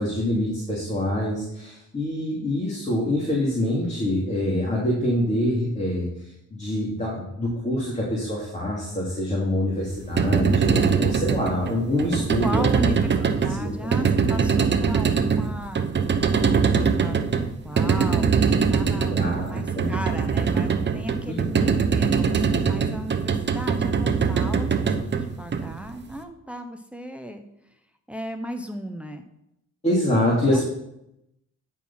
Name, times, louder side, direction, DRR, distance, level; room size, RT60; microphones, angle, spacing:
voice 1, 0.0-6.1 6.5-12.6 13.6-13.9 19.1-19.9 21.3-21.4 21.7-21.8 29.8-30.7, left 1 dB, 25° left, -5 dB, 2.8 m, -25 dB
sound 1, 9.9-26.1, right 6 dB, 35° right, 0.9 m, -22 dB
voice 2, 12.4-15.9 16.4-17.2 17.6-27.4 28.1-29.3 30.5-30.7, equal, 5° right, 6 dB, 0.8 m, -35 dB
10.0 x 4.7 x 5.6 m, 0.82 s
cardioid pair, 90°, 30 cm